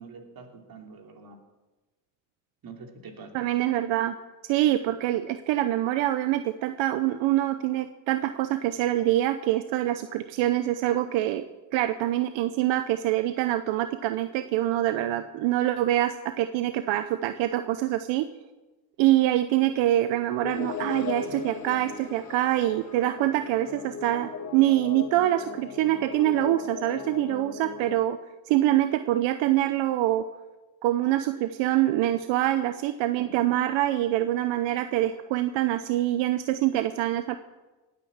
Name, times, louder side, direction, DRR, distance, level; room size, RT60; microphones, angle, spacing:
voice 1, 0.0-1.4 2.6-3.5, right 4 dB, 50° right, 4 dB, 3.1 m, -45 dB
voice 2, 3.3-4.1 4.5-11.4 11.7-18.2 19.0-28.2 28.5-30.2 30.8-37.4, right 14 dB, 80° right, 10 dB, 0.8 m, -25 dB
sound 1, 20.4-28.0, left 6 dB, 35° left, 1.4 m, -37 dB
18.0 x 9.5 x 7.3 m, 1.1 s
supercardioid pair, 90°, 45 cm